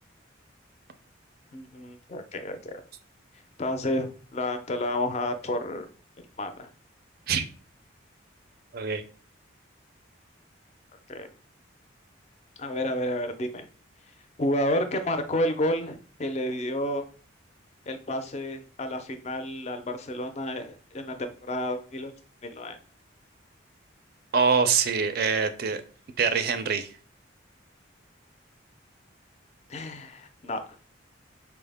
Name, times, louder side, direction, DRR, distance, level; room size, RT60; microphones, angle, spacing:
voice 1, 1.5-2.8 3.6-5.9 6.4-6.7 11.1-11.3 12.6-13.6 14.4-17.0 17.9-22.1 22.4-22.8 29.7-30.6, left 1 dB, 35° left, 7 dB, 0.4 m, -30 dB
voice 2, 24.3-25.8 26.2-26.9, right 5 dB, 50° right, 9 dB, 0.4 m, -24 dB
4.4 x 2.0 x 3.4 m, 0.40 s
head